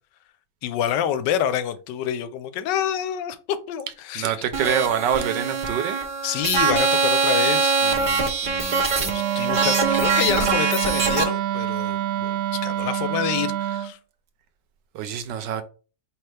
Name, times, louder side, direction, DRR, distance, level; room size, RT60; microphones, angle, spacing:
voice 1, 0.6-4.4 6.2-14.0, left 10 dB, 90° left, 1.2 m, -28 dB
voice 2, 4.1-6.0 14.9-15.6, right 8 dB, 90° right, 1.3 m, -25 dB
sound 1, 4.5-11.2, right 4 dB, 45° right, 0.7 m, -23 dB
Wind instrument woodwind instrument, 9.0-13.9, right 12 dB, 75° right, 1.1 m, -26 dB
4.7 x 3.2 x 3.3 m
omnidirectional pair, 1.8 m